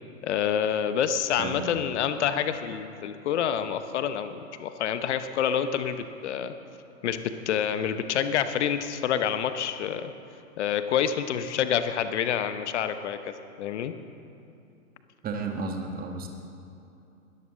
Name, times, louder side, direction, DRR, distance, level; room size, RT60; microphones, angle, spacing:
voice 1, 0.2-6.5 7.0-10.1 10.6-13.9, left 8 dB, 55° left, 10 dB, 0.9 m, -28 dB
voice 2, 1.4-1.7 15.2-16.3, right 3 dB, 20° right, 3 dB, 1.6 m, -33 dB
21.5 x 13.0 x 3.8 m, 2.7 s
figure-of-eight pair, 105°, 42 cm